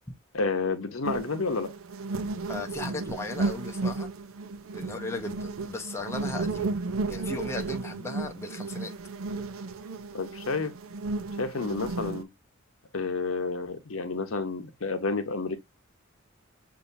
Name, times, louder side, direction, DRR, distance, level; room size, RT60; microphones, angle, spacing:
voice 1, 0.3-1.7 10.1-10.7 11.4-12.3 12.9-15.6, left 3 dB, 75° left, 0.9 m, -30 dB
sound 1, 1.0-12.2, right 3 dB, 75° right, 0.6 m, -33 dB
voice 2, 2.5-4.1 4.7-6.7 7.1-8.9, left 2 dB, 15° left, 0.6 m, -36 dB
6.8 x 2.8 x 2.6 m
head